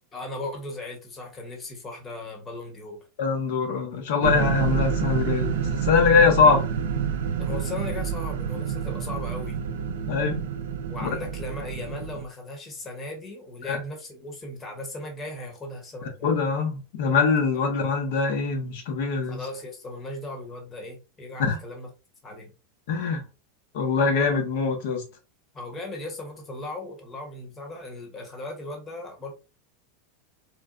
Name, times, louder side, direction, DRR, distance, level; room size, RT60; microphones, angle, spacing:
voice 1, 0.1-3.1 6.4-6.5 7.4-9.6 10.9-16.3 19.3-21.9 22.2-22.5 25.5-29.3, left 2 dB, 20° left, 1.1 m, -37 dB
voice 2, 3.2-6.6 10.1-10.5 11.0-11.1 13.7-13.8 16.2-19.4 21.4-21.6 22.9-23.2 23.7-25.0, left 5 dB, 70° left, 0.9 m, -23 dB
sound 1, 4.2-12.2, right 7 dB, 85° right, 0.4 m, -28 dB
4.3 x 2.2 x 2.4 m
supercardioid pair, 145°, 0 cm